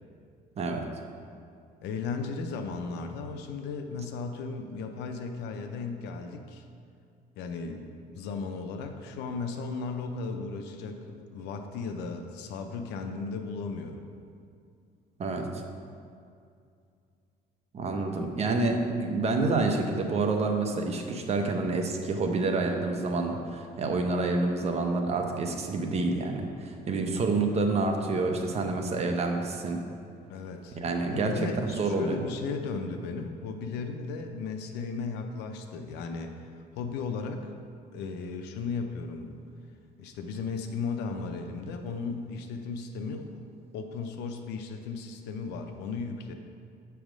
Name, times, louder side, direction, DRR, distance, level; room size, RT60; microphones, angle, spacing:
voice 1, 1.8-6.6 7.4-14.1 30.3-30.8 31.1-36.3 36.7-39.4 40.0-43.4 43.7-46.3, left 4 dB, 85° left, 5 dB, 0.5 m, -36 dB
voice 2, 15.2-15.6 17.7-29.8 30.8-32.2, right 3 dB, 40° right, 3 dB, 0.8 m, -28 dB
7.2 x 3.5 x 6.1 m, 2.4 s
cardioid pair, 110°, 17 cm